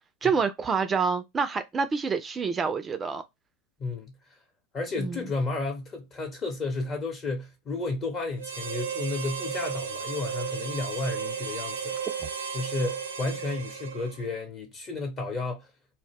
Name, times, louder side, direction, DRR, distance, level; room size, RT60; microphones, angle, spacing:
voice 1, 0.2-3.2 5.0-5.3, right 5 dB, 25° right, 0.3 m, -27 dB
voice 2, 3.8-4.1 4.7-12.0 12.5-15.7, left 3 dB, 35° left, 0.8 m, -32 dB
Harmonica, 8.4-14.4, right 6 dB, 80° right, 0.6 m, -34 dB
2.1 x 2.0 x 3.4 m
hypercardioid pair, 90°, 0 cm